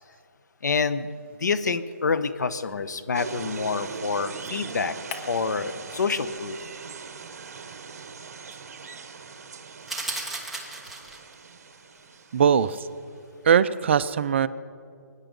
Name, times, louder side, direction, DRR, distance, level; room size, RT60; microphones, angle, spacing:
voice 1, 0.6-1.1 1.4-4.9 5.3-6.6, left 5 dB, 75° left, 12 dB, 1.0 m, -27 dB
sound 1, 3.1-12.9, right 5 dB, 55° right, 1.2 m, -40 dB
sound 2, 5.1-6.8 7.1-9.5, left 4 dB, 20° left, 0.8 m, -46 dB
sound 3, 9.9-11.3, right 2 dB, ahead, 1.0 m, -34 dB
voice 2, 12.3-12.8 13.4-14.5, right 7 dB, 40° right, 15 dB, 0.5 m, -20 dB
22.5 x 10.0 x 5.3 m, 2.4 s
hypercardioid pair, 165°, 9 cm